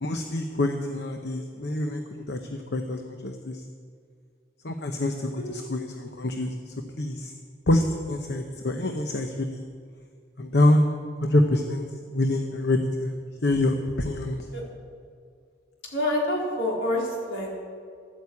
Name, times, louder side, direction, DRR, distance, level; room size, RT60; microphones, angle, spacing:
voice 1, 0.0-3.6 4.6-6.5 7.0-7.3 7.7-7.8 8.1-9.6 10.4-10.8 11.2-11.8 12.1-13.1 13.4-14.4, left 1 dB, 60° left, 4 dB, 0.9 m, -26 dB
voice 2, 5.0-5.6 14.5-14.6 15.9-17.5, left 1 dB, 80° left, -3 dB, 4.1 m, -28 dB
12.5 x 9.3 x 8.4 m, 2.2 s
head